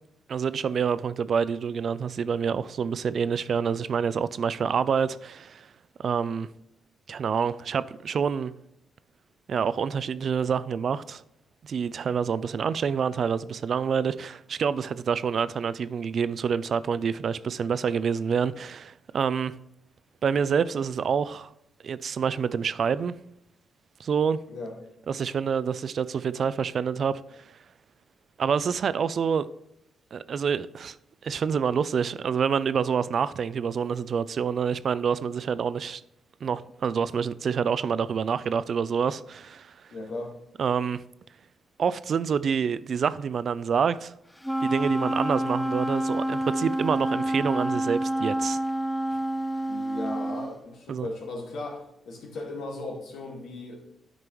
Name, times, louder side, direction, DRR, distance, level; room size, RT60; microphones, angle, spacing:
voice 1, 0.3-5.7 6.0-6.5 7.1-8.5 9.5-11.2 11.6-19.5 20.2-21.5 21.8-23.1 24.0-24.4 25.1-27.2 28.4-29.5 30.1-31.0 31.2-36.0 36.4-39.7 40.6-41.0 41.8-44.1 44.6-48.6 50.9-51.1, right 6 dB, 60° right, 0.3 m, -27 dB
voice 2, 39.9-40.4 49.7-53.8, left 2 dB, 80° left, 1.9 m, -37 dB
Wind instrument woodwind instrument, 44.4-50.5, right 1 dB, 5° left, 0.5 m, -28 dB
9.6 x 5.2 x 3.1 m
cardioid pair, 85°, 0 cm